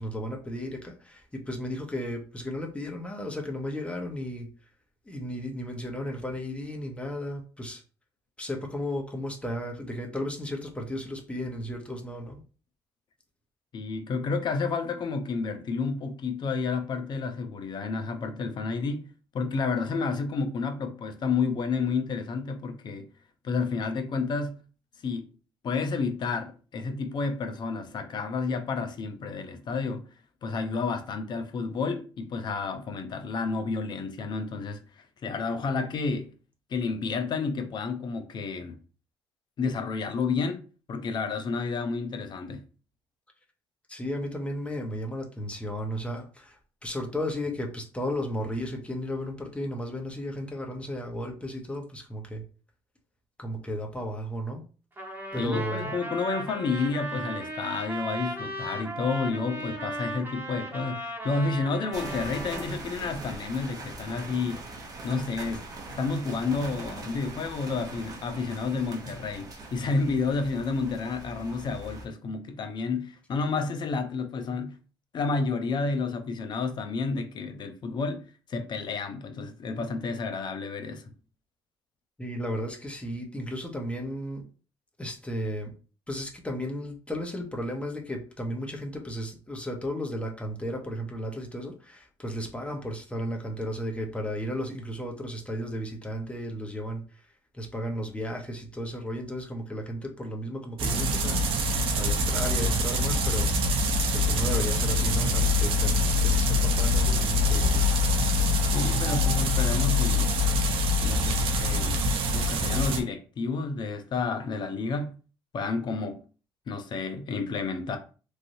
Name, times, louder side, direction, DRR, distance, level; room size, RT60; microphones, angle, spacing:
voice 1, 0.0-4.5 5.1-7.8 8.4-12.4 43.9-52.4 53.4-54.6 55.3-55.9 82.2-84.4 85.0-85.7 86.1-97.3 97.5-101.7 101.9-103.5 104.1-107.9, equal, 10° left, 1.0 m, -34 dB
voice 2, 13.7-23.1 23.4-24.5 25.0-25.3 25.6-30.0 30.4-36.3 36.7-38.8 39.6-40.6 40.9-42.6 55.4-64.6 65.0-65.6 65.9-74.7 75.1-78.2 78.5-81.1 108.7-110.3 111.0-112.0 112.3-115.1 115.5-116.2 116.7-118.0, left 4 dB, 50° left, 0.6 m, -30 dB
Trumpet, 55.0-62.7, right 1 dB, 20° right, 1.2 m, -36 dB
sound 1, 61.9-72.1, right 2 dB, 40° right, 0.8 m, -41 dB
sound 2, 100.8-113.0, left 2 dB, 70° right, 0.6 m, -24 dB
3.2 x 2.6 x 2.6 m
supercardioid pair, 75°, 10 cm